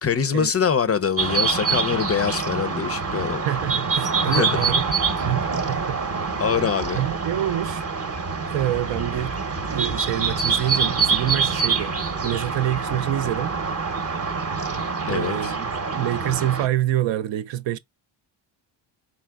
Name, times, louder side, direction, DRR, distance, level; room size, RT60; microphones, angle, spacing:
voice 1, 0.0-3.4 4.3-4.6 6.4-7.0 15.0-15.5, left 7 dB, 30° left, 0.5 m, -24 dB
sound 1, 1.2-16.7, right 5 dB, 30° right, 0.8 m, -25 dB
voice 2, 3.4-4.8 5.2-6.0 6.9-7.8 8.5-9.4 9.7-11.9 12.2-13.5 15.0-17.8, right 13 dB, 65° right, 0.6 m, -26 dB
4.1 x 3.6 x 2.2 m
cardioid pair, 90°, 49 cm